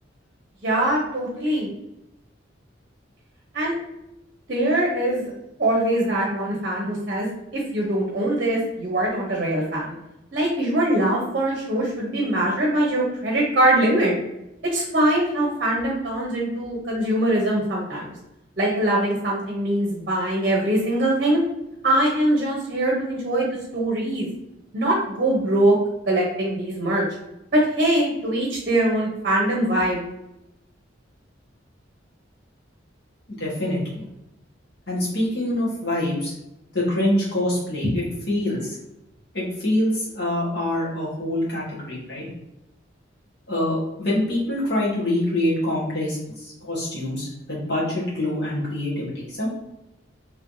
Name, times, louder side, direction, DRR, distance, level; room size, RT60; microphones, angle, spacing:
voice 1, 0.6-1.7 3.5-3.7 4.5-5.3 5.6-9.9 10.3-14.1 14.7-18.1 18.6-21.4 21.8-23.5 23.7-24.3 24.7-25.7 26.1-27.0 27.5-30.0, right 1 dB, 50° right, -2 dB, 0.7 m, -22 dB
voice 2, 33.3-34.0 34.9-36.3 36.7-38.8 39.3-42.3 43.5-49.5, left 1 dB, 60° left, -6 dB, 1.3 m, -25 dB
3.2 x 3.1 x 2.6 m, 0.88 s
head